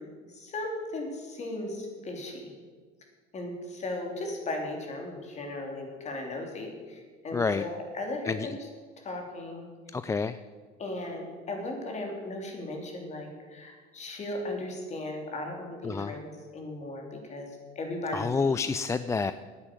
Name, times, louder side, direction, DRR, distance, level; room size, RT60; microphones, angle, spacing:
voice 1, 0.3-2.5 3.3-8.6 9.0-9.7 10.8-18.5, left 2 dB, 35° left, 2 dB, 3.3 m, -37 dB
voice 2, 7.3-7.7 8.2-8.6 9.9-10.4 15.8-16.2 18.1-19.3, left 4 dB, 15° left, 12 dB, 0.3 m, -28 dB
10.0 x 9.7 x 9.0 m, 1.5 s
cardioid pair, 115°, 20 cm